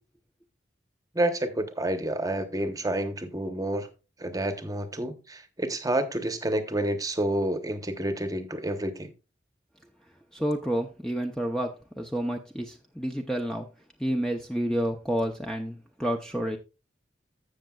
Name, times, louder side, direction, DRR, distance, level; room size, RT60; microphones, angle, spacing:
voice 1, 1.1-3.9 4.2-9.1, right 1 dB, 20° right, 1.0 m, -29 dB
voice 2, 10.3-13.7 14.0-16.6, equal, 5° left, 0.6 m, -29 dB
15.0 x 6.5 x 2.3 m
head